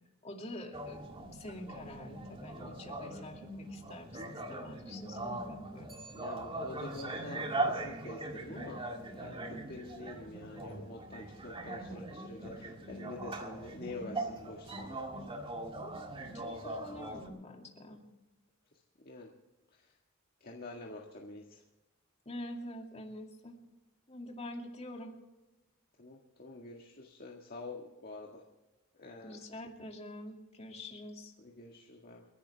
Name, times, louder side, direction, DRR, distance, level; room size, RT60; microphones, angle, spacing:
voice 1, 0.2-5.9 16.4-18.0 22.3-23.6 24.1-25.1 29.2-31.3, left 1 dB, 30° left, 2 dB, 2.5 m, -46 dB
sound 1, 0.7-17.3, right 2 dB, 25° right, 1.9 m, -40 dB
voice 2, 6.1-8.8 9.1-15.0 19.1-19.3 20.4-21.6 26.0-28.4 29.0-29.3 31.4-32.3, left 2 dB, 45° left, -1 dB, 1.8 m, -47 dB
29.0 x 11.5 x 3.5 m, 1.1 s
head